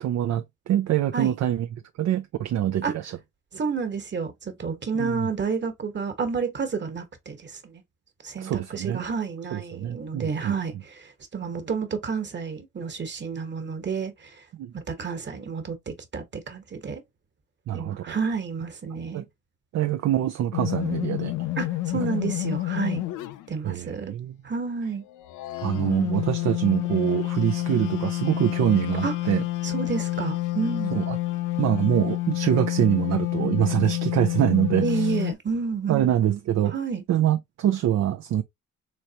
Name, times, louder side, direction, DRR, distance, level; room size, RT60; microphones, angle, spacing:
voice 1, 0.0-1.7 2.0-3.2 4.9-5.3 8.4-9.0 9.5-10.5 14.6-14.7 17.7-18.2 19.1-19.2 19.7-21.3 23.6-24.4 25.6-29.4 30.9-31.2 31.6-35.1 35.9-36.7 37.1-38.4, right 11 dB, 60° right, 0.5 m, -24 dB
voice 2, 3.5-7.7 8.2-14.3 14.7-17.0 17.7-19.2 21.6-23.0 23.5-24.1 24.4-25.0 29.0-29.1 29.6-30.9 34.8-36.2 36.7-37.0, right 5 dB, 35° right, 1.4 m, -30 dB
sound 1, 20.5-23.5 25.1-35.3, left 17 dB, 85° left, 0.5 m, -28 dB
4.1 x 3.3 x 2.9 m
cardioid pair, 90°, 30 cm